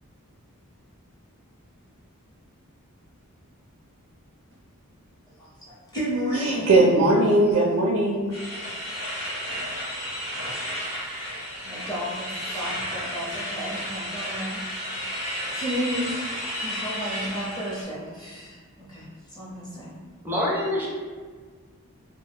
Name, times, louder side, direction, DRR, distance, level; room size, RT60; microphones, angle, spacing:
voice 1, 5.4-6.8 11.6-14.6 15.5-19.9, equal, 20° left, -7 dB, 0.8 m, -32 dB
voice 2, 6.3-8.4, right 2 dB, 70° right, -2 dB, 0.4 m, -20 dB
sound 1, 8.3-17.8, equal, 45° left, 1.0 m, -32 dB
voice 3, 20.2-20.9, left 1 dB, 10° right, -4 dB, 0.5 m, -25 dB
2.8 x 2.2 x 3.4 m, 1.5 s
head